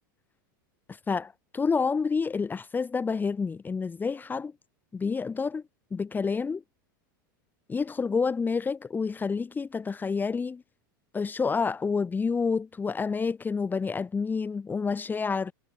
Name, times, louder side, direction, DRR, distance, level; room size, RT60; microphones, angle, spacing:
voice 1, 0.9-4.5 4.9-5.6 5.9-6.6 7.7-10.6 11.1-15.5, left 5 dB, 15° left, 2.2 m, -29 dB
hypercardioid pair, 115°, 11 cm